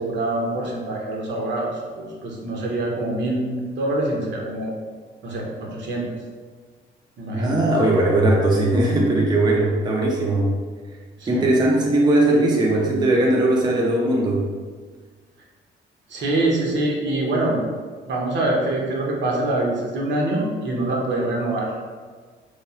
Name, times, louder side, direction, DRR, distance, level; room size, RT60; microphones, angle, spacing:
voice 1, 0.0-1.7 2.0-4.8 5.2-6.1 7.2-7.6 11.2-11.5 16.1-17.6 18.0-21.7, right 2 dB, 65° right, -2 dB, 0.7 m, -25 dB
voice 2, 7.3-10.5 11.3-14.5, right 1 dB, 20° right, -2 dB, 0.4 m, -19 dB
3.0 x 2.3 x 2.4 m, 1.5 s
cardioid pair, 90°, 20 cm